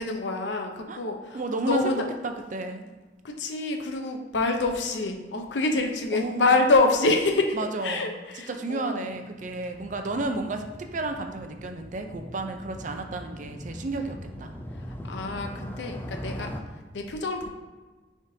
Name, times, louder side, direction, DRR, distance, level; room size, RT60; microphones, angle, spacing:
voice 1, 0.0-2.1 3.2-7.6 7.8-9.1 15.1-16.5 16.9-17.5, left 3 dB, 85° left, 4 dB, 0.7 m, -26 dB
voice 2, 1.3-1.9 2.2-2.8 6.1-6.5 7.5-8.1 8.5-14.5, right 2 dB, 45° right, 5 dB, 0.5 m, -32 dB
Motorcycle, 9.1-16.6, equal, 10° left, 0.5 m, -40 dB
9.4 x 3.6 x 2.7 m, 1.3 s
head